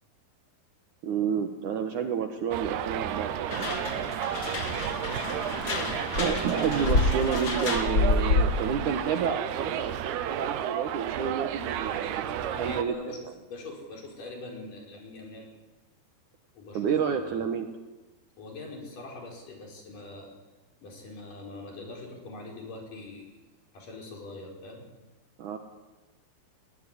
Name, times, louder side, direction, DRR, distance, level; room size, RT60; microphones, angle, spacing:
voice 1, 1.0-3.7 6.2-13.0 16.7-17.7 25.4-25.6, right 7 dB, 65° right, 6 dB, 2.4 m, -30 dB
Subway metro underground, 2.5-12.8, right 10 dB, 90° right, 3.2 m, -32 dB
sound 1, 3.5-8.7, left 3 dB, 35° left, 1.7 m, -28 dB
voice 2, 5.7-6.4 12.5-13.2 13.5-15.5 16.5-16.9 17.3-17.5 18.4-20.3 20.8-23.4 23.7-24.9, left 2 dB, 55° left, 1 dB, 6.5 m, -42 dB
20.0 x 19.0 x 10.0 m, 1.2 s
omnidirectional pair, 4.5 m